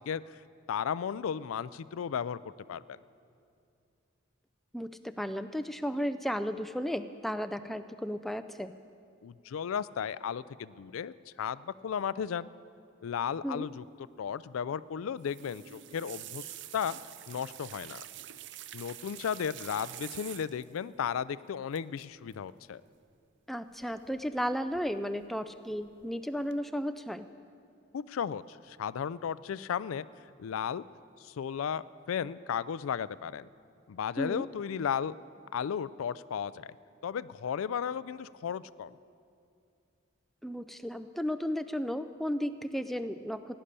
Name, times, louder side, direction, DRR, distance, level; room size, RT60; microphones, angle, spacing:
voice 1, 0.7-2.4 2.7-3.0 9.2-12.5 13.0-13.8 14.2-16.5 16.7-17.0 17.3-18.0 18.7-22.8 27.9-30.1 30.4-30.8 31.2-33.5 33.9-35.1 35.5-36.7 37.0-39.0, left 7 dB, 90° left, 17 dB, 0.4 m, -34 dB
voice 2, 4.7-8.7 13.4-13.7 23.5-27.3 34.2-34.5 40.4-43.6, equal, ahead, 10 dB, 0.3 m, -34 dB
sound 1, 15.2-20.8 21.7-22.0 22.3-22.6 23.8-24.4 24.7-25.3 25.7-26.1 26.5-26.6, right 12 dB, 60° right, 0.5 m, -46 dB
16.5 x 10.0 x 6.7 m, 2.5 s
head